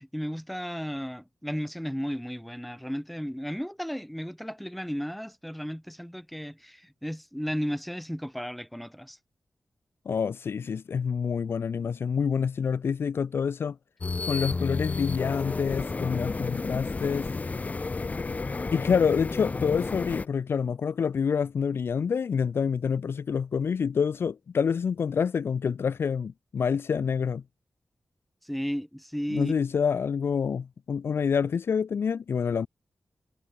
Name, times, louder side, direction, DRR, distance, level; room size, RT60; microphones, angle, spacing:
voice 1, 0.0-9.2 28.4-29.5, equal, ahead, 2.0 m, -34 dB
voice 2, 10.1-13.8 14.2-17.3 18.7-27.4 29.3-32.7, left 6 dB, 60° left, 0.4 m, -27 dB
sound 1, 14.0-20.3, left 3 dB, 35° left, 2.8 m, -31 dB
wide cardioid pair, 125°, 4 cm